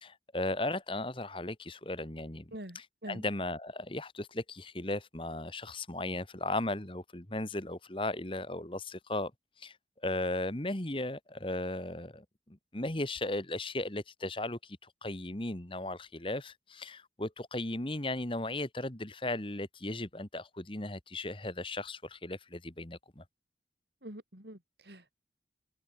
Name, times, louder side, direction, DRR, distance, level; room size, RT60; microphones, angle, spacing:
voice 1, 0.0-2.6 3.1-9.3 9.6-9.7 10.0-23.2, left 2 dB, 30° left, 1.9 m, -36 dB
voice 2, 2.5-3.3 24.0-25.1, right 1 dB, 70° right, 6.2 m, -46 dB
head